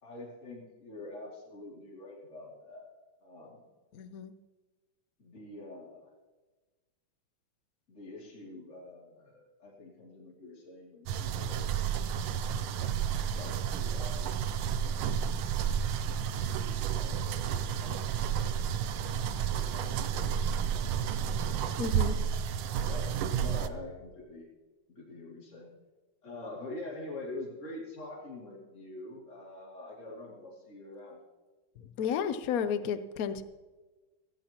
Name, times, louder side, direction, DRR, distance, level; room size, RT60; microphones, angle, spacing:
voice 1, 0.0-2.9 3.2-3.6 5.2-6.1 7.9-11.7 13.3-14.3 16.1-18.5 19.4-20.9 21.4-21.9 22.8-24.5 24.9-25.7 26.2-31.2, left 2 dB, 35° left, -5 dB, 3.2 m, -45 dB
voice 2, 3.9-4.3 21.8-22.1 32.0-33.4, left 7 dB, 65° left, 11 dB, 0.9 m, -32 dB
sound 1, 11.1-23.7, right 8 dB, 85° right, 1.6 m, -31 dB
17.0 x 16.0 x 3.0 m, 1.2 s
omnidirectional pair, 2.3 m